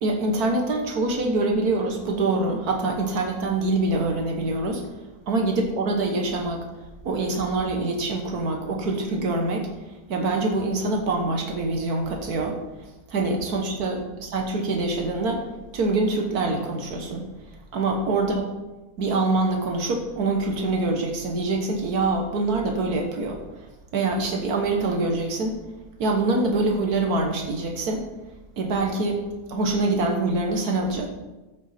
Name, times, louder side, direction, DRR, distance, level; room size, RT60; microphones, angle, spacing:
voice 1, 0.0-4.8 5.3-6.6 7.0-9.7 10.1-12.6 13.1-15.4 15.7-17.3 17.7-18.5 19.0-23.7 23.9-25.6 26.0-28.0 28.6-29.2 29.5-31.1, right 2 dB, 85° right, 2 dB, 1.7 m, -25 dB
14.5 x 6.2 x 4.3 m, 1.1 s
omnidirectional pair, 1.6 m